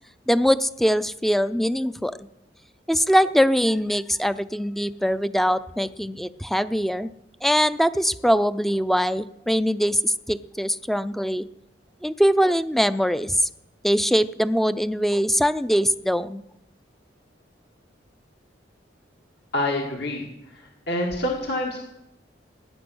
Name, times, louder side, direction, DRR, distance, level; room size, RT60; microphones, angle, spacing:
voice 1, 0.3-2.1 2.9-7.1 7.4-11.4 12.0-13.4 13.8-16.4, equal, ahead, 14 dB, 0.5 m, -22 dB
voice 2, 19.5-20.2 20.5-21.8, left 1 dB, 65° left, 0 dB, 1.9 m, -27 dB
18.0 x 10.5 x 6.3 m, 0.87 s
head